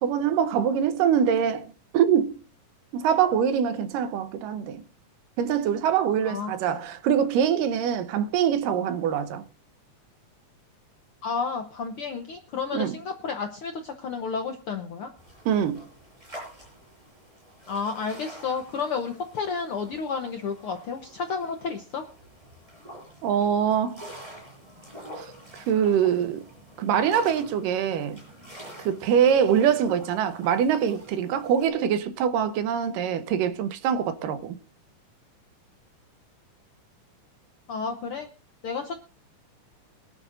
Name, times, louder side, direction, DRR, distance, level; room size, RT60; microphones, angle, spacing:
voice 1, 0.0-2.4 2.9-4.8 5.4-9.4 12.7-13.0 15.5-15.8 23.2-24.0 25.2-25.3 25.5-26.4 26.8-28.2 28.8-34.6, right 8 dB, 90° right, 2.6 m, -24 dB
voice 2, 6.2-6.6 11.2-15.1 17.7-22.0 37.7-38.3 38.6-38.9, left 5 dB, 70° left, 1.3 m, -31 dB
sound 1, 15.2-31.7, equal, 10° right, 7.2 m, -46 dB
22.5 x 11.5 x 2.6 m
omnidirectional pair, 3.8 m